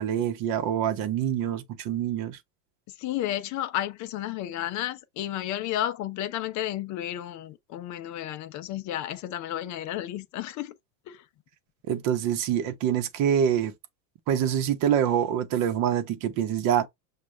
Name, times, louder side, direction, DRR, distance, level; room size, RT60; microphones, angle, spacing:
voice 1, 0.0-2.4 11.9-13.7 14.3-16.9, right 9 dB, 55° right, 0.8 m, -25 dB
voice 2, 3.0-10.7 11.1-11.2, left 12 dB, 45° left, 0.5 m, -32 dB
6.3 x 2.4 x 3.1 m
supercardioid pair, 135°, 42 cm